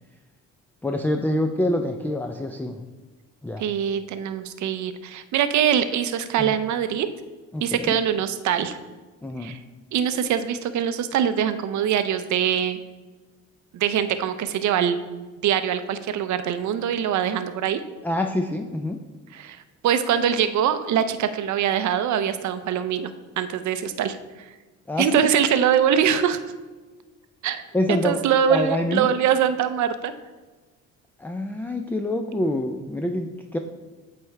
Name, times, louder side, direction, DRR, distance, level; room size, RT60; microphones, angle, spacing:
voice 1, 0.8-2.8 3.4-3.7 6.4-6.6 7.5-8.0 9.2-9.5 18.0-19.0 24.9-25.3 27.7-28.2 28.5-29.1 31.2-33.6, left 1 dB, 5° left, 5 dB, 0.3 m, -26 dB
voice 2, 3.6-7.1 7.6-8.8 9.4-9.6 9.9-12.8 13.7-15.0 15.4-17.8 19.3-24.5 25.0-26.4 27.4-27.6 28.0-30.1, right 8 dB, 60° right, 11 dB, 0.5 m, -23 dB
8.5 x 3.4 x 3.3 m, 1.3 s
supercardioid pair, 75°, 34 cm